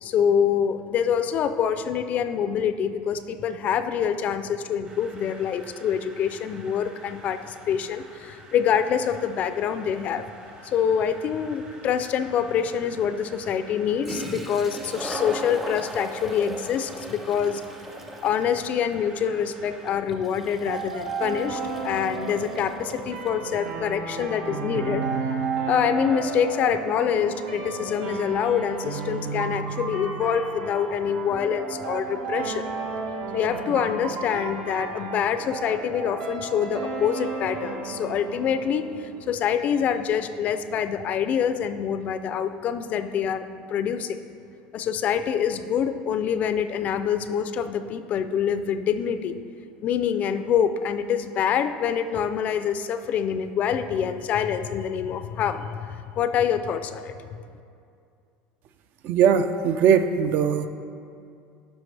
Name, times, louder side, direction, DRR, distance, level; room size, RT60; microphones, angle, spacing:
voice 1, 0.0-10.2 10.6-17.6 18.2-25.0 25.7-32.7 33.3-44.2 44.7-49.4 49.8-57.4, left 8 dB, 40° left, 10 dB, 0.4 m, -26 dB
sound 1, 4.8-19.9, right 2 dB, 30° right, 0.9 m, -49 dB
Toilet flush, 12.0-12.1 13.7-13.8 14.0-23.4, right 1 dB, 5° right, 0.6 m, -38 dB
sound 2, 20.7-39.6, right 4 dB, 75° right, 1.5 m, -33 dB
voice 2, 59.0-60.7, right 7 dB, 50° right, 10 dB, 0.4 m, -20 dB
11.5 x 5.2 x 3.3 m, 2.4 s
supercardioid pair, 135°, 4 cm